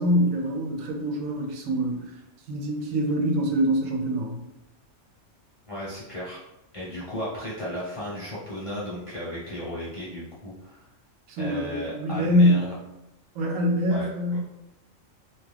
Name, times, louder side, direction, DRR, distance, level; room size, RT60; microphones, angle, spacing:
voice 1, 0.0-2.1 2.5-4.4 11.3-12.7 13.3-14.4, equal, 85° right, 1 dB, 1.0 m, -24 dB
voice 2, 5.7-6.4 6.7-10.8 11.4-12.8 13.9-14.4, left 1 dB, 30° left, -8 dB, 0.8 m, -35 dB
2.6 x 2.3 x 3.2 m, 0.88 s
omnidirectional pair, 1.4 m